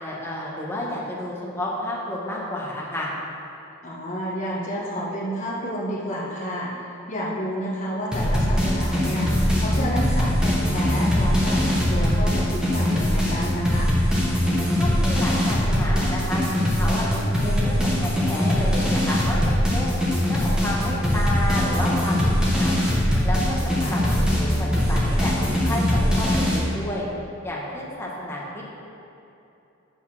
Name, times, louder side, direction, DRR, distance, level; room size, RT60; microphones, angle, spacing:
voice 1, 0.0-3.1 14.8-17.1 17.4-20.0 20.3-22.8 23.2-25.3 25.6-27.1 27.4-28.6, left 1 dB, 10° left, -5 dB, 1.5 m, -31 dB
voice 2, 3.8-13.9 23.8-23.9, equal, 35° left, -6 dB, 1.5 m, -30 dB
sound 1, 8.1-26.6, equal, 5° right, 1.4 m, -22 dB
8.6 x 5.6 x 6.0 m, 2.8 s
head